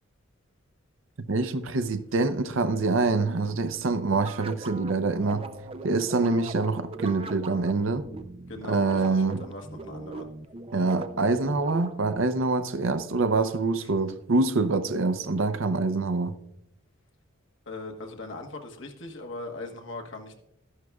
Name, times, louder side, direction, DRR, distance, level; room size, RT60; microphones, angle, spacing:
voice 1, 1.2-5.5 5.8-8.0 8.7-9.4 10.7-16.4, right 3 dB, 80° right, 0.6 m, -25 dB
sound 1, 4.1-12.2, right 2 dB, 30° right, 0.4 m, -40 dB
voice 2, 8.5-10.2 13.8-13.9 17.7-20.4, left 2 dB, 70° left, 1.3 m, -40 dB
12.0 x 11.0 x 2.3 m
head